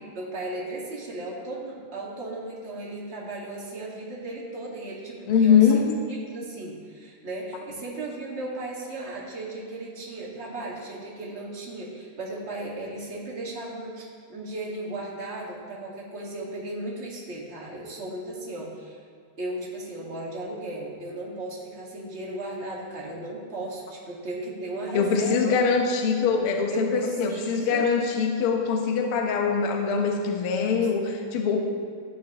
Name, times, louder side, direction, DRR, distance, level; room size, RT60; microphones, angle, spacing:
voice 1, 0.1-19.0 19.4-25.6 26.7-27.9, right 2 dB, 35° right, -5 dB, 1.1 m, -36 dB
voice 2, 5.3-5.8 24.9-31.6, left 6 dB, 90° left, 2 dB, 1.2 m, -23 dB
15.0 x 9.7 x 3.0 m, 2.2 s
omnidirectional pair, 4.1 m